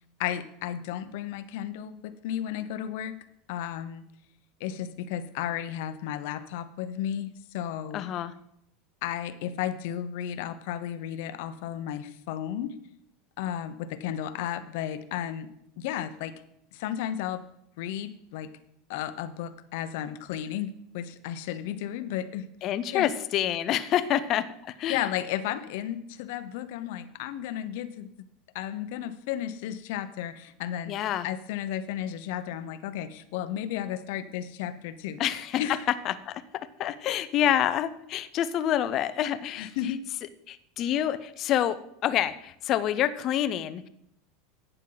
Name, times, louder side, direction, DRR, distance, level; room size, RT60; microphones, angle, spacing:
voice 1, 0.2-3.1 3.5-4.0 4.6-8.0 9.0-12.8 13.4-15.5 15.8-16.3 16.7-17.4 17.8-18.5 18.9-22.5 22.9-23.1 24.9-28.1 28.5-31.0 31.2-35.2 35.6-35.8 39.6-40.0, left 10 dB, 60° left, 12 dB, 0.8 m, -33 dB
voice 2, 7.9-8.3 22.6-25.1 30.9-31.3 35.2-35.6 36.0-36.4 36.8-39.9 40.5-41.8 42.0-43.9, left 11 dB, 30° left, 13 dB, 0.5 m, -27 dB
12.0 x 9.0 x 3.9 m, 0.75 s
supercardioid pair, 175°, 0 cm